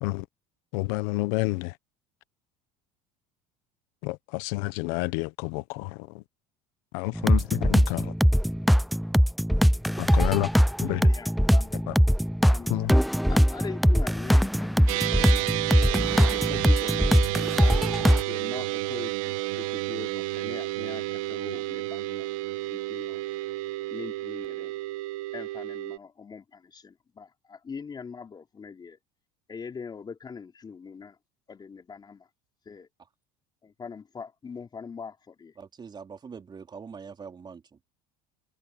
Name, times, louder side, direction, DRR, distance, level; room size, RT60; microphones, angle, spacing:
voice 1, 0.7-1.7 4.0-5.9 6.9-8.1 10.0-10.5 10.8-11.0 11.9-12.0 12.7-12.9, left 22 dB, 80° left, 0.9 m, -29 dB
sound 1, 7.2-18.2, equal, ahead, 0.5 m, -21 dB
voice 2, 9.9-11.8 12.4-12.7 13.3-15.5 16.0-17.2 17.6-17.8 18.3-22.3 22.7-23.2 23.9-24.7 25.3-29.0 29.5-31.2 31.5-32.2 32.7-32.9 33.6-35.5, left 5 dB, 25° left, 4.4 m, -42 dB
sound 2, 14.9-26.0, right 18 dB, 90° right, 1.7 m, -31 dB
voice 3, 35.6-37.6, right 6 dB, 25° right, 4.2 m, -43 dB
supercardioid pair, 115°, 17 cm